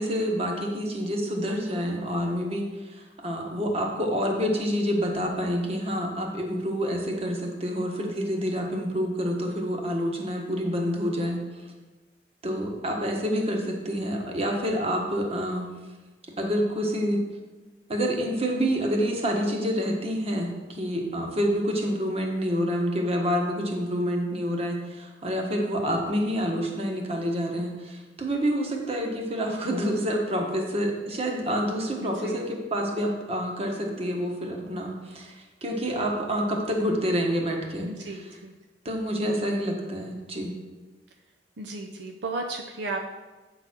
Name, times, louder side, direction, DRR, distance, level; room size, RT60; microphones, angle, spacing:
voice 1, 0.0-11.4 12.4-15.7 16.4-17.2 17.9-37.9 38.8-40.5, equal, 35° right, 1 dB, 1.3 m, -28 dB
voice 2, 32.0-32.4 37.8-38.5 41.6-43.1, right 2 dB, 75° right, 2 dB, 0.6 m, -34 dB
8.2 x 4.0 x 6.0 m, 1.2 s
head